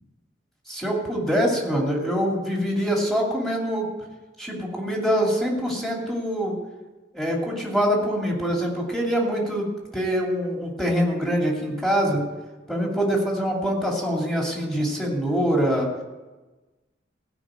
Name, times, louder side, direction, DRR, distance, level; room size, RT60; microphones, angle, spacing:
voice 1, 0.7-3.9 4.4-6.6 7.1-12.2 12.7-15.9, equal, ahead, -2 dB, 2.6 m, -24 dB
16.0 x 5.7 x 8.9 m, 1.2 s
head